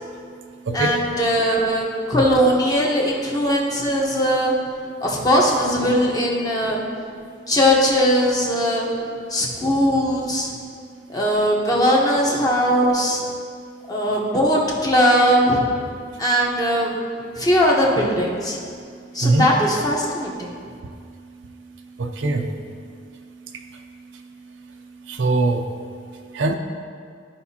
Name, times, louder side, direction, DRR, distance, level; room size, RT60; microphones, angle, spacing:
voice 1, 0.7-4.6 5.0-6.8 7.5-8.9 9.3-10.5 11.1-13.2 13.9-15.6 16.2-16.9 17.4-18.6 19.1-20.5, equal, 20° left, -3 dB, 1.0 m, -19 dB
voice 2, 22.0-22.5 25.1-25.6 26.3-26.5, right 2 dB, 80° right, 4 dB, 0.6 m, -21 dB
13.0 x 5.0 x 2.8 m, 2.2 s
head